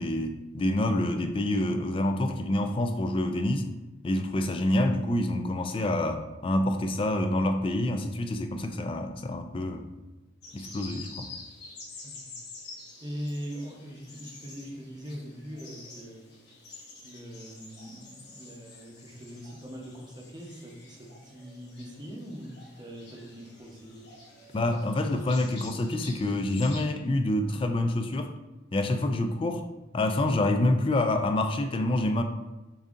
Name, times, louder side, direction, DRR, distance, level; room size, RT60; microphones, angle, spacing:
voice 1, 0.0-3.7 4.0-9.8 10.5-11.3 24.5-28.3 28.7-29.6 29.9-32.2, left 1 dB, 30° left, 6 dB, 0.3 m, -27 dB
sound 1, 10.4-26.8, left 3 dB, 60° left, 1.2 m, -48 dB
voice 2, 12.0-12.3 13.0-16.3 17.0-24.1, equal, 20° right, -1 dB, 0.7 m, -41 dB
6.9 x 2.7 x 2.5 m, 1.1 s
head